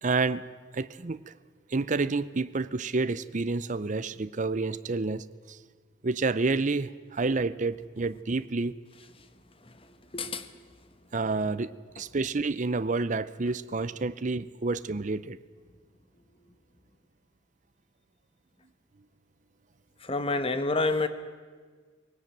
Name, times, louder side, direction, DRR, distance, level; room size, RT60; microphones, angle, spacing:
voice 1, 0.0-0.4 0.7-1.2 1.7-5.6 6.0-8.7 11.1-15.4, right 3 dB, 40° right, 15 dB, 0.6 m, -29 dB
voice 2, 10.1-10.5 20.0-21.1, left 3 dB, 30° left, 10 dB, 1.2 m, -28 dB
20.0 x 18.0 x 9.2 m, 1.5 s
head